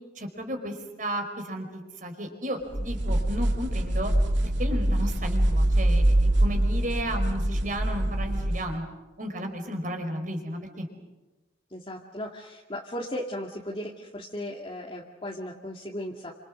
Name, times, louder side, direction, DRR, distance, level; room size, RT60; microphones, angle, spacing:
voice 1, 0.1-4.1 4.4-6.1 6.4-8.9 9.2-10.9, equal, 45° right, 4 dB, 5.0 m, -33 dB
sound 1, 2.7-8.7, right 1 dB, 85° right, 2.6 m, -24 dB
voice 2, 11.7-16.3, left 1 dB, 30° left, -2 dB, 2.2 m, -36 dB
30.0 x 27.0 x 6.4 m, 1.1 s
head